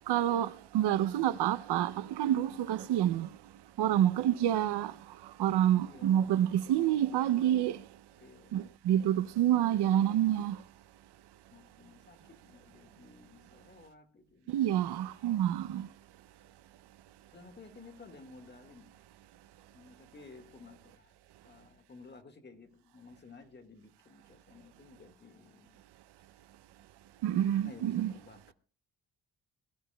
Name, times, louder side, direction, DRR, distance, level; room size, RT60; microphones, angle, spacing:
voice 1, 0.1-3.3 3.8-4.9 5.4-7.8 8.5-10.6 14.5-15.9 27.2-28.1, right 11 dB, 80° right, 0.7 m, -28 dB
voice 2, 5.8-7.3 8.2-8.6 11.5-14.5 17.3-18.9 19.7-21.1 21.4-25.8 27.4-28.5, left 4 dB, 25° left, 1.8 m, -54 dB
22.0 x 13.0 x 2.3 m
cardioid pair, 155°, 40 cm